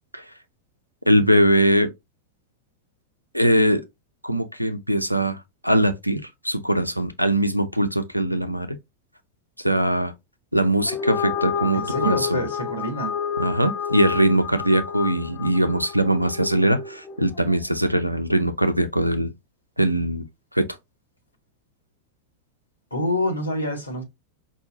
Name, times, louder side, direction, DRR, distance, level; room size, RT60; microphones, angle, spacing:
voice 1, 1.1-1.9 3.3-3.8 4.2-8.8 9.6-10.1 10.5-12.4 13.4-19.3 19.8-20.2 20.5-20.6, right 1 dB, 90° right, 0.5 m, -21 dB
sound 1, 10.8-17.4, left 7 dB, 30° left, 0.6 m, -30 dB
voice 2, 11.7-13.1 22.9-24.0, left 1 dB, 85° left, 1.5 m, -26 dB
5.4 x 2.4 x 2.7 m
figure-of-eight pair, 90°, 0 cm